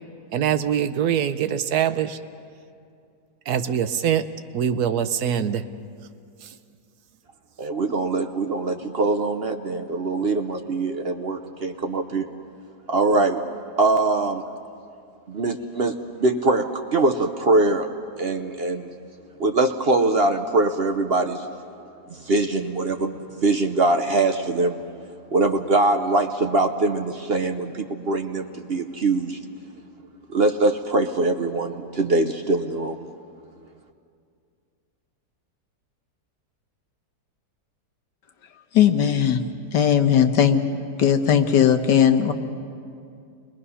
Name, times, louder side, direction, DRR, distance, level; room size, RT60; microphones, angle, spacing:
voice 1, 0.3-2.2 3.5-4.2 4.5-5.6 6.4-6.5, right 9 dB, 70° right, 11 dB, 1.2 m, -23 dB
voice 2, 7.6-12.2 12.9-13.4 13.8-14.4 15.3-17.9 18.2-18.9 19.4-21.5 22.1-24.7 25.3-29.4 30.3-33.1, right 2 dB, 50° right, 5 dB, 0.8 m, -22 dB
voice 3, 38.7-39.4 39.7-40.6 41.0-42.3, left 8 dB, 85° left, 6 dB, 1.7 m, -18 dB
29.5 x 21.5 x 5.6 m, 2.4 s
omnidirectional pair, 1.8 m